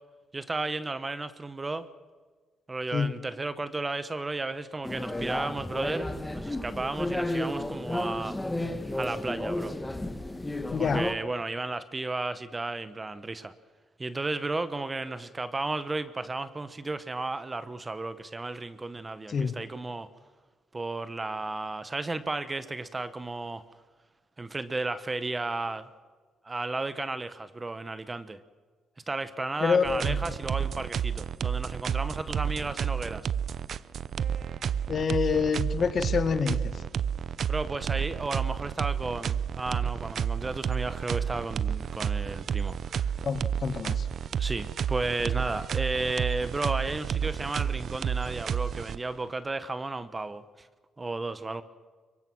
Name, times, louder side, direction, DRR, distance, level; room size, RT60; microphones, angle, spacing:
voice 1, 0.3-1.9 2.7-6.1 6.3-8.4 8.9-9.7 10.8-13.5 14.0-20.1 20.7-23.6 24.4-25.9 26.4-28.4 29.1-33.3 37.5-43.1 44.4-50.7 51.0-51.6, right 3 dB, 25° right, 13 dB, 1.2 m, -33 dB
sound 1, 4.8-11.1, left 1 dB, 10° left, 1.8 m, -32 dB
voice 2, 10.7-11.0 19.3-19.6 29.6-30.3 34.9-36.8 43.2-44.1, left 5 dB, 50° left, 11 dB, 1.7 m, -27 dB
sound 2, 29.9-49.3, right 8 dB, 60° right, 0.7 m, -31 dB
24.0 x 23.5 x 6.2 m, 1.5 s
cardioid pair, 90°, 0 cm